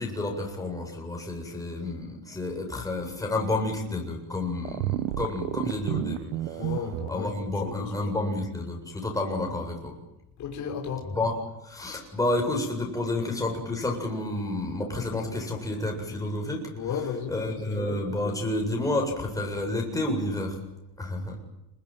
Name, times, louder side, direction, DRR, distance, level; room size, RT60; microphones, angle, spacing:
voice 1, 0.0-6.3 7.1-9.9 11.1-11.3 11.6-16.6 17.3-20.5 21.0-21.4, left 2 dB, 10° left, 1 dB, 7.7 m, -30 dB
sound 1, 4.6-7.1, right 15 dB, 70° right, 1.3 m, -31 dB
voice 2, 6.6-8.1 10.4-11.2 16.7-17.8, left 6 dB, 40° left, 0 dB, 5.8 m, -34 dB
29.0 x 22.0 x 9.2 m, 0.87 s
cardioid pair, 140°, 44 cm